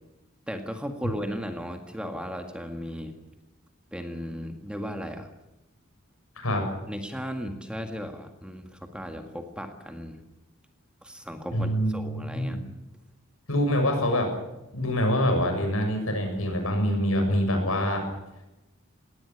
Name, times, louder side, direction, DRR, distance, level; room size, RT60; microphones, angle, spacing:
voice 1, 0.5-3.1 3.9-5.3 6.9-10.2 11.0-12.6, equal, 5° right, 5 dB, 1.9 m, -36 dB
voice 2, 11.5-12.6 13.5-14.3 14.7-18.0, equal, 80° left, 4 dB, 7.0 m, -25 dB
20.0 x 17.0 x 9.8 m, 0.97 s
head